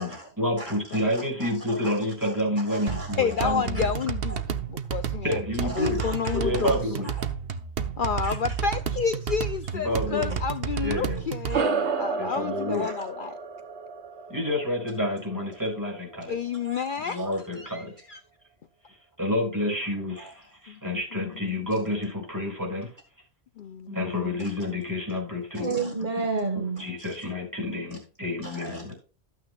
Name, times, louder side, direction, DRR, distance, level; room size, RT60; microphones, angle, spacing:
voice 1, 0.0-3.9 5.2-6.0 6.3-7.1 9.7-10.4 10.8-11.2 12.2-12.9 14.3-16.4 17.0-17.9 19.2-20.1 20.8-22.9 23.9-25.8 26.5-28.9, left 1 dB, 15° right, 6.4 m, -29 dB
voice 2, 0.6-2.3 2.7-3.5 4.3-4.4 5.7-6.4 6.6-6.8 7.0-7.3 8.2-8.4 12.8-12.9 16.6-17.2 20.2-20.3 25.5-27.2 28.4-28.9, right 4 dB, 45° right, 2.0 m, -34 dB
sound 1, 2.9-11.6, right 7 dB, 60° right, 1.1 m, -31 dB
voice 3, 3.2-5.4 5.8-6.8 8.0-13.4 16.3-17.2 17.6-18.2 20.7-20.8 21.1-21.3 23.6-24.1, left 6 dB, 55° left, 0.7 m, -30 dB
sound 2, 11.5-16.3, right 5 dB, 75° right, 1.3 m, -31 dB
13.5 x 9.3 x 2.4 m
omnidirectional pair, 1.1 m